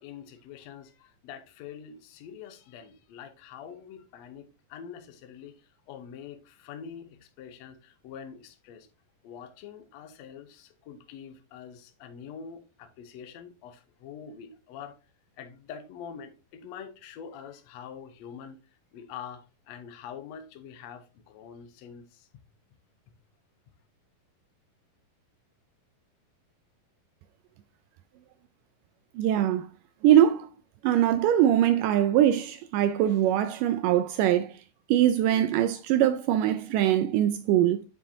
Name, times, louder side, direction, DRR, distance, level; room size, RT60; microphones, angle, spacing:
voice 1, 0.0-8.9 9.2-14.9 15.4-18.6 18.9-22.4 23.1-23.2, left 7 dB, 70° left, 1.7 m, -45 dB
voice 2, 29.2-29.7 30.0-30.5 30.8-34.6 34.9-37.8, right 11 dB, 80° right, 2.0 m, -22 dB
7.3 x 7.2 x 2.7 m
omnidirectional pair, 4.1 m